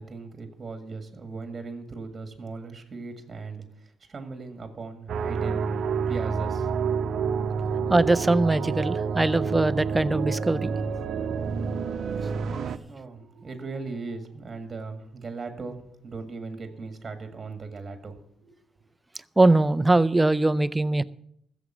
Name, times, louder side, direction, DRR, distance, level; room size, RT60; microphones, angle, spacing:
voice 1, 0.0-5.7 6.1-7.2 12.8-18.2, right 4 dB, 30° right, 7 dB, 1.9 m, -38 dB
sound 1, 5.1-12.8, right 6 dB, 65° right, 0.8 m, -28 dB
voice 2, 7.9-10.7 12.5-12.6 19.4-21.0, right 2 dB, 15° right, 14 dB, 0.5 m, -21 dB
14.5 x 7.2 x 7.3 m, 0.71 s
cardioid pair, 90°, 0 cm